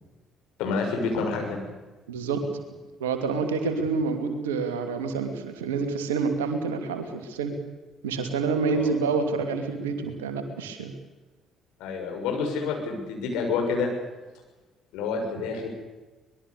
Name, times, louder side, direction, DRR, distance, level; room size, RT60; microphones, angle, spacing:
voice 1, 0.6-1.6 8.7-8.9 11.8-13.9 14.9-15.7, left 4 dB, 70° left, 2 dB, 6.7 m, -28 dB
voice 2, 2.1-2.4 3.0-7.5 8.0-10.9, right 4 dB, 80° right, 6 dB, 2.7 m, -28 dB
24.5 x 21.0 x 6.9 m, 1.2 s
figure-of-eight pair, 50°, 0 cm